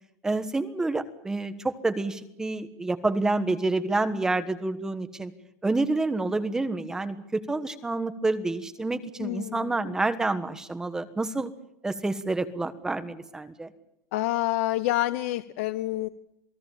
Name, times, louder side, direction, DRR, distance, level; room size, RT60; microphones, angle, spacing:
voice 1, 0.2-5.3 5.6-11.5 11.8-13.7, right 2 dB, 5° right, 10 dB, 1.3 m, -28 dB
voice 2, 9.2-10.0 14.1-16.1, left 16 dB, 70° left, 12 dB, 1.0 m, -28 dB
28.0 x 18.5 x 7.3 m, 0.83 s
cardioid pair, 175°, 8 cm